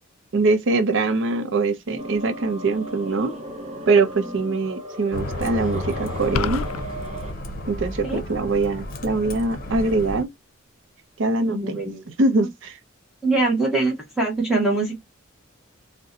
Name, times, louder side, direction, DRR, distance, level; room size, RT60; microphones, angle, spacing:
voice 1, 0.3-3.3 3.9-6.6 7.7-10.3 11.2-11.8 12.2-12.8, right 3 dB, 60° right, 0.5 m, -22 dB
sound 1, 2.0-7.3, right 1 dB, 35° right, 0.8 m, -36 dB
Bus, 5.1-10.2, left 1 dB, 45° left, 0.7 m, -32 dB
sound 2, 6.3-6.8, left 6 dB, 85° left, 0.3 m, -26 dB
voice 2, 11.4-12.0 13.2-15.0, right 3 dB, 5° right, 0.8 m, -23 dB
2.6 x 2.1 x 3.6 m
head